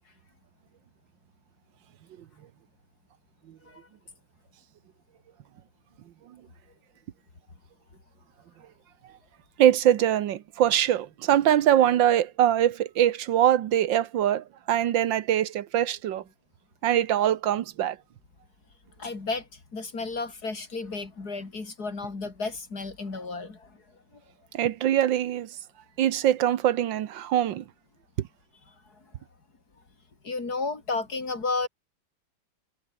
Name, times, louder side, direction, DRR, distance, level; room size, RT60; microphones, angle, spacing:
voice 1, 9.6-16.2 16.8-18.0 24.5-25.6 26.0-27.6 28.2-28.3, right 11 dB, 70° right, 1.6 m, -23 dB
voice 2, 19.0-23.8 30.2-31.7, left 3 dB, 50° left, 4.1 m, -32 dB
omnidirectional pair, 2.1 m